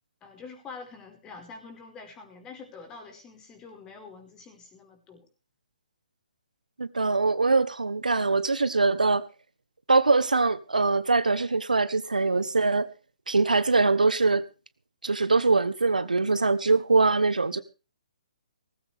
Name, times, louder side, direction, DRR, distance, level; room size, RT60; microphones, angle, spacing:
voice 1, 0.2-5.3, left 4 dB, 20° left, 4 dB, 5.0 m, -46 dB
voice 2, 6.8-9.2 9.9-12.9 13.3-14.4 15.0-17.6, right 3 dB, 85° right, 15 dB, 1.1 m, -23 dB
18.5 x 14.5 x 3.5 m, 0.33 s
figure-of-eight pair, 135°, 4 cm